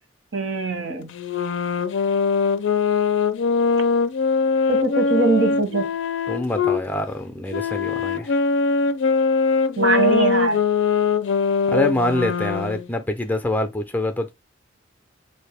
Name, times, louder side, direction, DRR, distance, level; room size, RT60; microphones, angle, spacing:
voice 1, 0.3-1.1 4.7-5.9 9.8-10.6, right 3 dB, 80° right, 1.2 m, -22 dB
sound 1, 1.1-6.8 7.5-12.9, left 5 dB, 70° left, 0.4 m, -22 dB
voice 2, 6.3-8.3 11.7-14.3, left 1 dB, 10° left, 0.5 m, -25 dB
4.2 x 2.6 x 3.3 m
head